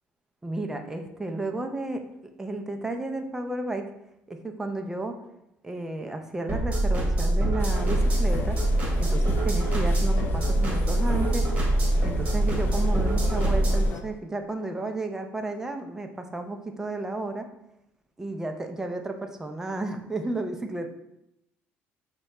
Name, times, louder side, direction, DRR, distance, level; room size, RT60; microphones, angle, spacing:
voice 1, 0.4-2.0 2.4-3.9 4.3-5.2 5.6-8.6 9.0-11.5 12.0-17.5 18.2-20.9, right 2 dB, 10° right, 5 dB, 0.4 m, -32 dB
sound 1, 6.5-13.9, right 1 dB, 30° right, 1.3 m, -24 dB
sound 2, 7.6-14.0, left 5 dB, 50° left, 0.4 m, -38 dB
4.7 x 2.2 x 4.0 m, 0.84 s
cardioid pair, 125°, 5 cm